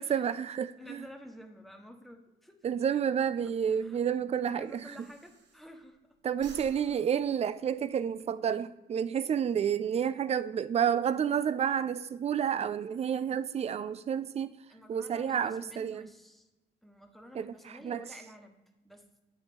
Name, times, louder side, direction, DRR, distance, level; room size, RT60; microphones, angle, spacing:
voice 1, 0.0-1.1 2.6-4.9 6.2-14.6 14.9-16.1 17.3-18.0, right 8 dB, 35° right, 0.3 m, -30 dB
voice 2, 0.8-2.7 3.7-4.0 4.5-6.0 14.7-16.5 16.8-18.6 18.8-19.1, equal, ahead, 0.9 m, -51 dB
Breathing, 3.8-6.0 6.3-8.3, right 3 dB, 60° right, 0.9 m, -56 dB
9.2 x 3.9 x 3.4 m
cardioid pair, 90°, 20 cm